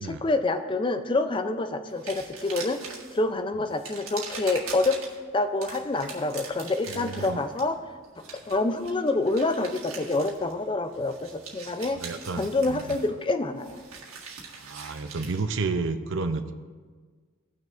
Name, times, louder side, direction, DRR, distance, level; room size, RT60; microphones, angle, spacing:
voice 1, 0.0-5.0 5.3-7.8 8.5-12.0 12.3-13.8, left 2 dB, 25° left, 9 dB, 0.4 m, -27 dB
sound 1, 1.9-3.2 3.7-5.2 5.6-10.7 10.9-15.4, right 5 dB, 80° right, 1.7 m, -42 dB
voice 2, 6.9-7.4 11.9-12.8 14.6-16.5, right 3 dB, 60° right, 9 dB, 0.5 m, -31 dB
17.5 x 6.3 x 2.5 m, 1.5 s
head